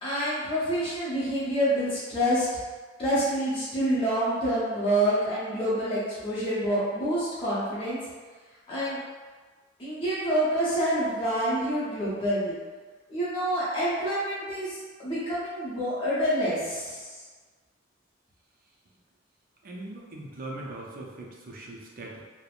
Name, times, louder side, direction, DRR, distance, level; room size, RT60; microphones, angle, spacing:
voice 1, 0.0-2.5 3.0-8.0 8.7-9.0 9.8-12.5 13.1-17.2, equal, 30° left, -10 dB, 0.7 m, -27 dB
voice 2, 19.6-22.2, right 2 dB, 45° right, -2 dB, 0.5 m, -40 dB
3.2 x 2.1 x 2.4 m, 1.4 s
head